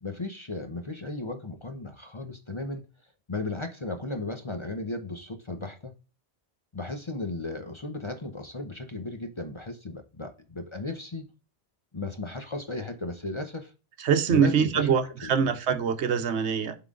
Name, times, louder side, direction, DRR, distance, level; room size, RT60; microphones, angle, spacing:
voice 1, 0.0-2.9 3.3-5.9 6.7-11.3 11.9-13.7 14.3-14.9 15.2-15.5, left 2 dB, 30° left, 0.7 m, -35 dB
voice 2, 14.0-16.7, right 7 dB, 75° right, 1.1 m, -24 dB
7.6 x 3.9 x 3.6 m
omnidirectional pair, 1.2 m